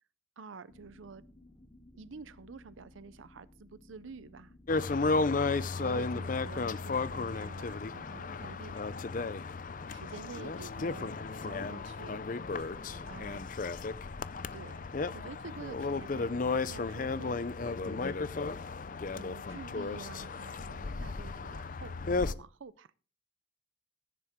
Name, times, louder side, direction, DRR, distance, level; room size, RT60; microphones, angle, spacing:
voice 1, 0.4-1.2 1.9-5.1 5.8-9.4 9.9-11.1 11.4-12.3 13.1-13.5 14.5-18.0 19.1-22.9, right 4 dB, 85° right, 0.6 m, -49 dB
sound 1, 0.7-8.6, left 1 dB, 25° left, 0.9 m, -59 dB
sound 2, 4.7-22.3, left 3 dB, 45° left, 0.5 m, -34 dB
voice 2, 12.6-13.0, equal, 5° left, 8.0 m, -59 dB
15.0 x 10.0 x 3.6 m
head